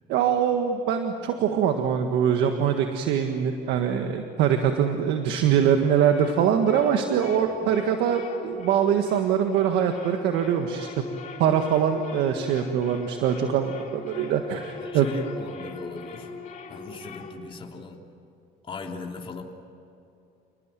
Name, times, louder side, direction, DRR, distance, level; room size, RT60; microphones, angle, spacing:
voice 1, 0.1-10.9 11.4-15.1, right 8 dB, 85° right, 5 dB, 1.7 m, -23 dB
sound 1, 5.4-17.4, left 3 dB, 50° left, 3.2 m, -41 dB
voice 2, 14.8-16.3 16.7-18.0 18.6-19.4, left 4 dB, 30° left, 1 dB, 3.2 m, -38 dB
28.5 x 20.0 x 9.2 m, 2.7 s
cardioid pair, 110°, 17 cm